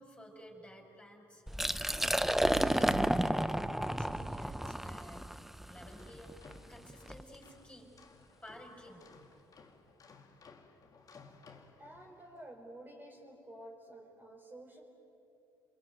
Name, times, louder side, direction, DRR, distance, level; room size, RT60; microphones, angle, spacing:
voice 1, 0.0-2.3 2.6-3.5 4.0-5.3 5.7-6.3 6.7-7.9 8.4-9.1, equal, 15° left, 0 dB, 6.7 m, -53 dB
Liquid, 1.5-7.2, equal, 5° right, 0.7 m, -32 dB
sound 1, 2.0-4.8, right 6 dB, 60° right, 1.6 m, -45 dB
sound 2, 5.9-12.4, left 4 dB, 45° left, 2.6 m, -59 dB
voice 2, 11.8-14.8, right 1 dB, 20° right, -1 dB, 4.8 m, -51 dB
27.5 x 22.0 x 9.3 m, 2.9 s
hypercardioid pair, 60°, 9 cm